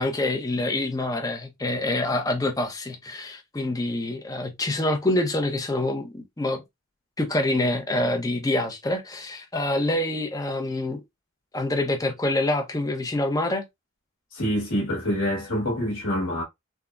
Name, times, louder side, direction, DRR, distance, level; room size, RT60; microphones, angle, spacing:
voice 1, 0.0-6.6 7.2-11.0 11.5-13.7, left 1 dB, 15° left, 0.5 m, -26 dB
voice 2, 14.3-16.4, equal, 60° left, 1.1 m, -26 dB
3.6 x 2.0 x 2.2 m
head